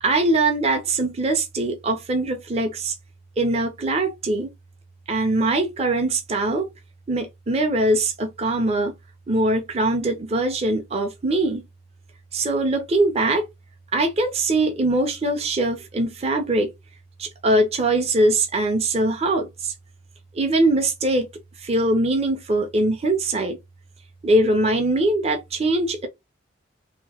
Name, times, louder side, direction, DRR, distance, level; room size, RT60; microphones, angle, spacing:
voice 1, 0.0-2.9 3.4-4.5 5.1-6.7 7.1-8.9 9.3-11.7 12.3-13.5 13.9-16.7 17.2-19.7 20.3-21.3 21.6-23.6 24.2-26.1, right 2 dB, 30° right, 0.6 m, -22 dB
2.9 x 2.6 x 2.8 m
head